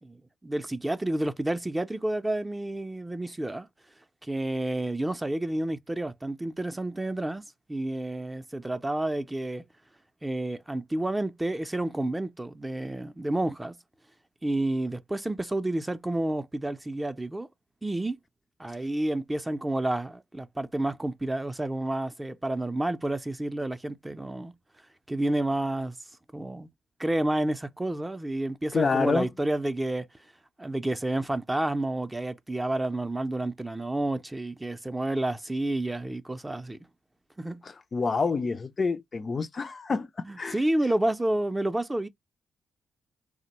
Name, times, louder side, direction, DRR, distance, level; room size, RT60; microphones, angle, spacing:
voice 1, 0.0-3.7 4.2-7.4 7.7-9.7 10.2-13.8 14.4-17.5 17.8-18.2 18.6-24.5 25.1-25.9 26.3-26.7 27.0-30.1 30.6-36.8 37.4-37.6 40.3-42.1, right 1 dB, 15° right, 0.5 m, -30 dB
voice 2, 28.7-29.3 37.6-40.6, left 4 dB, 40° left, 0.3 m, -28 dB
3.3 x 2.1 x 2.9 m
cardioid pair, 75°, 0 cm